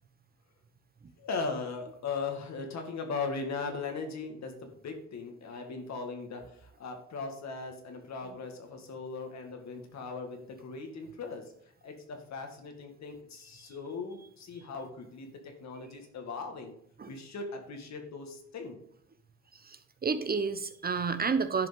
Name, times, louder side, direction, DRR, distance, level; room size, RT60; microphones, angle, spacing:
voice 1, 1.2-11.4 11.8-16.7 17.1-18.8, left 4 dB, 65° left, 4 dB, 2.2 m, -39 dB
voice 2, 19.6-21.7, right 5 dB, 30° right, 10 dB, 0.9 m, -30 dB
10.5 x 5.2 x 5.3 m, 0.67 s
cardioid pair, 90°, 30 cm